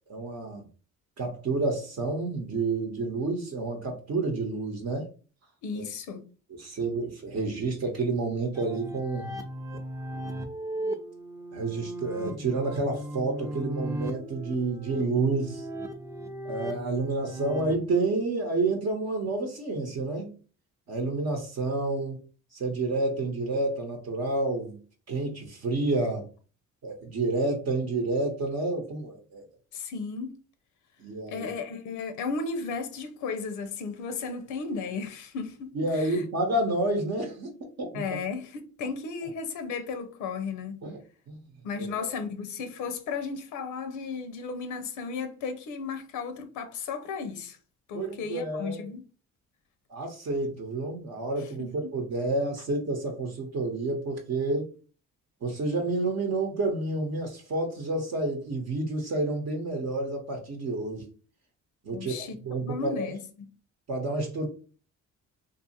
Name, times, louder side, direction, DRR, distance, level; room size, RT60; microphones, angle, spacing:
voice 1, 0.1-0.6 1.2-5.1 5.7-5.8 6.6-9.3 11.5-15.7 16.4-20.3 20.9-22.2 22.5-24.8 25.1-26.3 26.8-29.4 31.0-31.5 35.7-38.0 40.8-41.0 41.3-41.4 41.8-42.1 47.9-48.9 49.9-54.7 55.4-61.1 61.8-63.1 63.9-64.5, right 2 dB, 60° right, 0.8 m, -29 dB
voice 2, 5.6-6.2 29.7-30.4 31.3-36.2 37.9-40.8 41.6-47.6 47.9-49.0 51.6-51.7 61.9-62.4 62.6-63.2, left 5 dB, 85° left, 0.5 m, -34 dB
sound 1, 8.5-17.7, right 1 dB, 10° right, 0.4 m, -37 dB
2.5 x 2.4 x 2.8 m
cardioid pair, 90°, 30 cm